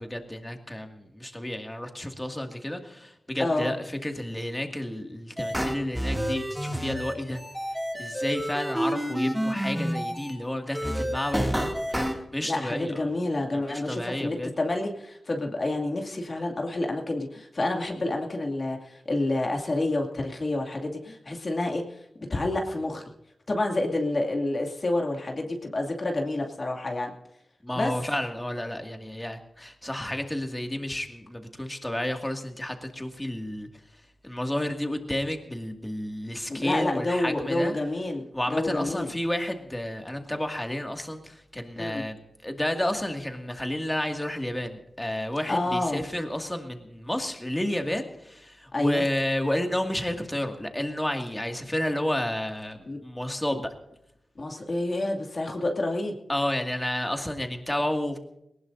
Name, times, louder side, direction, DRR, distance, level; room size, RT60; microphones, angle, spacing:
voice 1, 0.0-7.4 7.9-11.6 11.9-13.2 13.5-14.5 27.6-33.7 34.2-37.7 38.3-53.7 56.3-58.2, left 1 dB, 10° left, 4 dB, 2.2 m, -31 dB
voice 2, 3.4-3.7 12.4-22.0 22.3-23.0 23.5-27.1 27.8-27.9 36.5-38.2 38.5-39.1 41.8-42.0 45.5-46.0 48.7-49.0 52.9-53.0 54.4-56.1, left 2 dB, 40° left, 1 dB, 2.4 m, -28 dB
sound 1, 5.4-10.3 10.7-12.1, equal, 5° right, 2.4 m, -29 dB
20.5 x 19.0 x 2.7 m, 0.80 s
wide cardioid pair, 80°, 0 cm